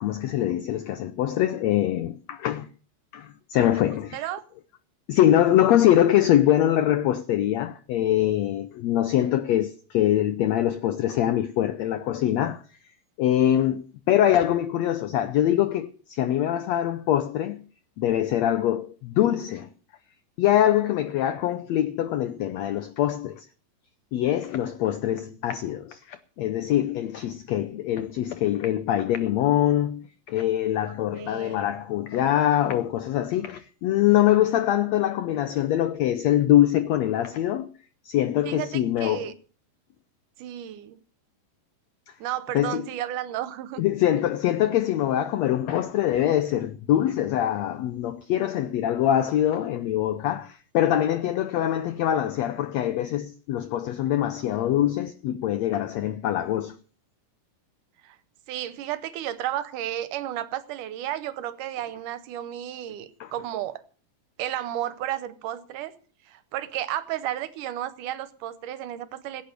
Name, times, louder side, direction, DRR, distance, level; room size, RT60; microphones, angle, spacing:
voice 1, 0.0-2.7 3.1-4.3 5.1-12.6 13.2-17.6 18.0-19.7 20.4-23.5 24.1-37.7 38.0-39.3 42.5-42.8 43.8-56.8 63.2-63.3, left 12 dB, 85° left, 1.5 m, -23 dB
voice 2, 31.2-31.7 38.4-39.3 40.4-41.0 42.2-43.8 58.0-58.2 58.5-63.8 64.4-65.9 66.3-69.4, right 12 dB, 75° right, 2.3 m, -33 dB
16.0 x 8.6 x 6.6 m
omnidirectional pair, 4.0 m